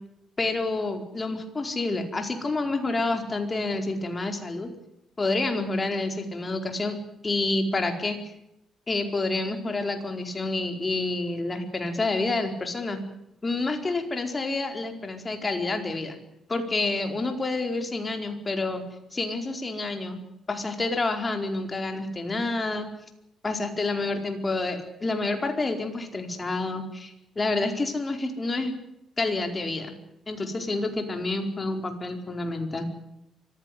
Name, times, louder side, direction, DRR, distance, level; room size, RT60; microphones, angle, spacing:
voice 1, 0.4-4.7 5.2-7.0 7.2-8.2 8.9-13.0 13.4-16.2 16.5-18.8 19.1-20.2 20.5-22.9 23.4-28.7 29.2-29.9 30.3-32.9, left 2 dB, 25° left, 5 dB, 4.6 m, -28 dB
25.0 x 15.5 x 9.5 m, 0.84 s
cardioid pair, 90°, 0 cm